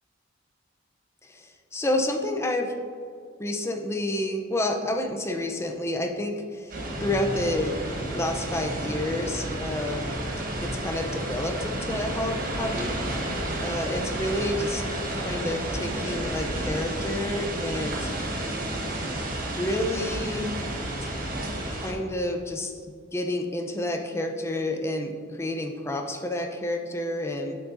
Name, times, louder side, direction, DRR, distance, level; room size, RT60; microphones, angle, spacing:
voice 1, 1.3-2.7 3.4-7.8 8.1-10.0 10.6-13.0 13.6-14.8 15.2-18.1 19.6-20.5 21.7-22.7 23.1-27.6, left 1 dB, 15° left, 3 dB, 0.6 m, -29 dB
sound 1, 6.7-21.9, right 1 dB, 45° right, 1.2 m, -31 dB
sound 2, 7.0-20.5, left 2 dB, 55° left, 1.1 m, -44 dB
8.7 x 7.3 x 2.7 m, 2.3 s
head